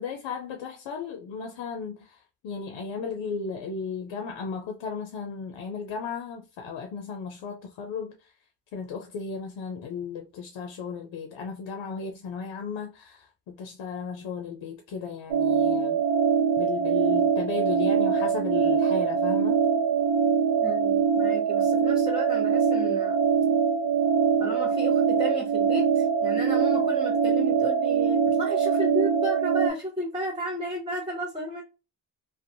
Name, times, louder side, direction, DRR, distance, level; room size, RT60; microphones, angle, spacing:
voice 1, 0.0-2.2 2.4-8.2 8.7-16.0 16.6-19.6, left 5 dB, 70° left, 0.6 m, -35 dB
sound 1, 15.3-29.7, right 6 dB, 90° right, 0.7 m, -23 dB
voice 2, 20.6-23.3 24.4-31.6, right 1 dB, 10° right, 0.8 m, -33 dB
2.5 x 2.2 x 2.6 m
supercardioid pair, 45°, 46 cm